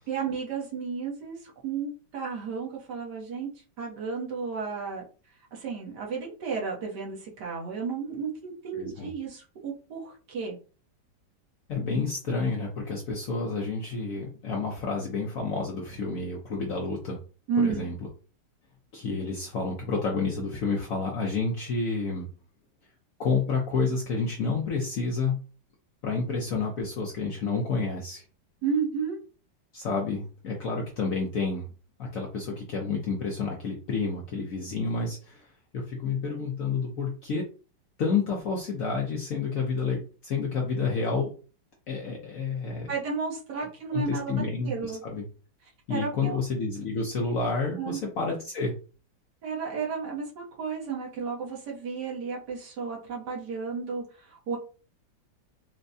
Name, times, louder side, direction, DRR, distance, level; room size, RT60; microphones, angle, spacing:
voice 1, 0.1-3.5 3.8-5.0 5.5-10.6 17.5-17.9 28.6-29.2 42.9-45.0 45.9-46.4 47.8-48.0 49.4-54.6, right 5 dB, 65° right, -2 dB, 1.6 m, -32 dB
voice 2, 8.7-9.1 11.7-17.2 17.6-17.9 18.9-22.3 23.2-25.4 26.0-28.2 29.7-31.7 32.0-37.5 38.0-41.3 41.9-42.9 43.9-45.2 45.9-48.7, left 4 dB, 65° left, -1 dB, 0.9 m, -29 dB
4.4 x 2.2 x 2.6 m, 0.36 s
omnidirectional pair, 2.1 m